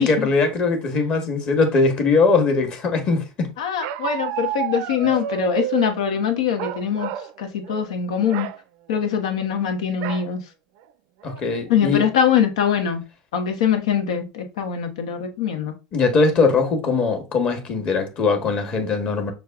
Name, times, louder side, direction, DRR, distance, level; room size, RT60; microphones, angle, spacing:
voice 1, 0.0-3.5 11.2-12.0 15.9-19.3, left 4 dB, 35° left, 1.3 m, -20 dB
voice 2, 3.6-7.1 7.4-8.5 8.9-10.4 11.7-13.0 13.3-15.7, left 8 dB, 85° left, 1.0 m, -22 dB
Bark, 3.8-5.9 6.6-7.3 7.6-7.9 8.2-8.6 10.0-10.3 10.8-10.9 11.2-11.7, right 11 dB, 65° right, 0.5 m, -29 dB
6.4 x 2.3 x 3.5 m
supercardioid pair, 120°, 3 cm